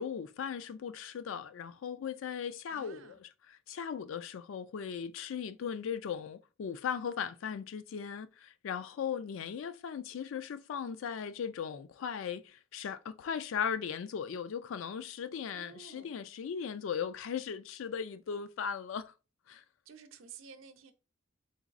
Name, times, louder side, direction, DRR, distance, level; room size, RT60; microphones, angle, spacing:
voice 1, 0.0-3.2 3.7-19.1 19.5-19.6, left 7 dB, 75° left, 0.4 m, -38 dB
voice 2, 2.7-3.2 15.5-16.1 19.9-20.9, right 6 dB, 90° right, 0.6 m, -52 dB
3.9 x 3.9 x 2.5 m
head